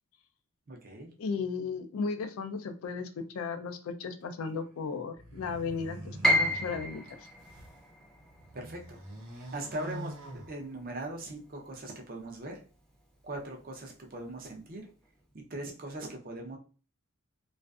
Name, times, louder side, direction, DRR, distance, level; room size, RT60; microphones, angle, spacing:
voice 1, 0.7-1.1 8.5-9.0 9.3-10.2 10.5-12.6 13.2-14.9 15.3-16.6, right 1 dB, 40° right, 1 dB, 0.5 m, -40 dB
voice 2, 1.2-7.0, left 4 dB, 70° left, 9 dB, 0.4 m, -35 dB
sound 1, 5.1-7.8 8.3-11.1, right 1 dB, 85° right, 0.8 m, -45 dB
Piano, 6.2-12.2 12.5-13.6 14.1-14.2 14.9-15.2, equal, ahead, 0.5 m, -33 dB
2.4 x 2.4 x 2.3 m, 0.36 s
head